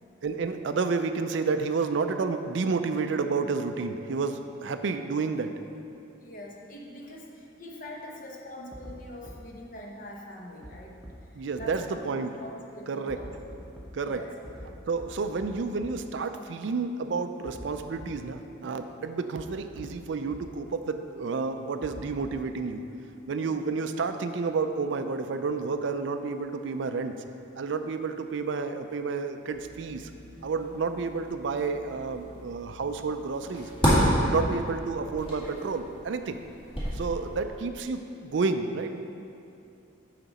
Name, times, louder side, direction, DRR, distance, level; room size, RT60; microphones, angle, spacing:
voice 1, 0.2-5.6 11.4-12.3 12.9-13.2 13.9-14.2 14.9-22.8 23.3-27.2 27.6-30.1 30.4-33.7 34.2-36.4 36.9-39.0, right 4 dB, 65° right, 8 dB, 0.4 m, -30 dB
voice 2, 6.2-11.0 11.6-13.3 14.0-14.3 15.3-15.5 23.5-23.7, equal, 45° left, -1 dB, 0.9 m, -43 dB
sound 1, 8.7-8.9 9.3-9.4 10.6-10.7 11.0-11.1 11.6-11.7 13.1-13.9 14.4-14.7 15.0-15.1 15.4-15.5 15.8-15.9 17.4-17.7 18.0-18.1 19.4-19.5 19.8-19.9 20.3-20.4 21.8-22.5, equal, ahead, 0.8 m, -43 dB
sound 2, 29.5-37.4, equal, 25° left, 2.0 m, -31 dB
8.9 x 5.9 x 4.1 m, 2.6 s
head